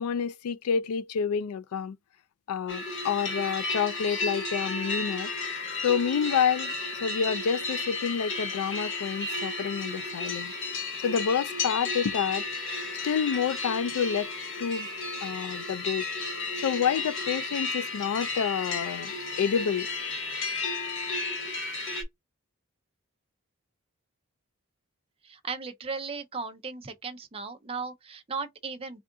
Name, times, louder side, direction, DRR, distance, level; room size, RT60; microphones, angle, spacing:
voice 1, 0.0-2.0 2.5-5.3 5.8-10.5 11.0-12.4 13.0-14.3 14.6-14.9 15.2-16.1 16.6-19.9, left 7 dB, 80° left, 0.3 m, -28 dB
sound 1, 2.7-22.0, left 3 dB, 55° left, 0.8 m, -33 dB
voice 2, 25.2-29.0, right 4 dB, 25° right, 0.5 m, -36 dB
3.6 x 2.4 x 3.7 m
head